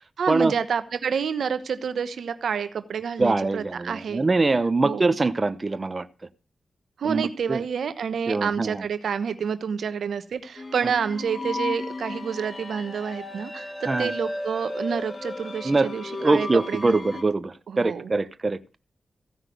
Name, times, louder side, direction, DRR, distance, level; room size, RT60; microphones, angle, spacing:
voice 1, 0.2-4.2 4.8-5.1 7.0-17.0 17.7-18.1, right 6 dB, 80° right, 11 dB, 1.1 m, -29 dB
voice 2, 3.2-6.1 7.0-7.6 8.3-8.8 10.8-10.9 13.8-14.1 15.6-15.9 16.2-18.8, right 3 dB, 40° right, 13 dB, 0.9 m, -23 dB
sound 1, 10.6-17.2, left 2 dB, 40° left, 2.3 m, -34 dB
15.5 x 5.8 x 9.3 m, 0.35 s
supercardioid pair, 40°, 0 cm